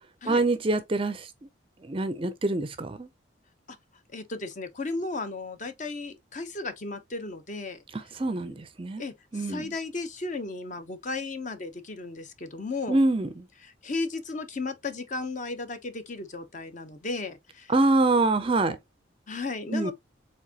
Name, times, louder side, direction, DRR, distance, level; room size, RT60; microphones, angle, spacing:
voice 1, 0.3-1.3 1.9-3.1 8.1-9.0 9.3-9.7 12.9-13.5 17.7-18.8 19.7-19.9, right 2 dB, 25° right, 0.5 m, -25 dB
voice 2, 4.1-7.8 9.0-13.0 13.6-17.7 19.3-19.9, left 3 dB, 40° left, 0.7 m, -35 dB
4.7 x 3.6 x 2.8 m
head